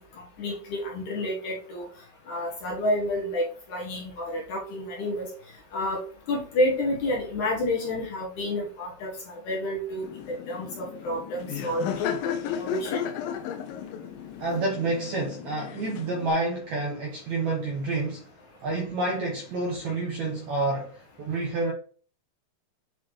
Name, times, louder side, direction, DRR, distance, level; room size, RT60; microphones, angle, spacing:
voice 1, 0.4-1.9 2.3-5.3 5.7-6.0 6.3-10.1 10.5-13.0, left 1 dB, 60° left, 2.2 m, -29 dB
Laughter, 10.0-16.3, left 8 dB, 80° left, 2.1 m, -34 dB
voice 2, 14.4-18.3 18.6-21.7, right 2 dB, 70° right, 1.8 m, -29 dB
8.2 x 4.2 x 3.1 m
omnidirectional pair, 4.6 m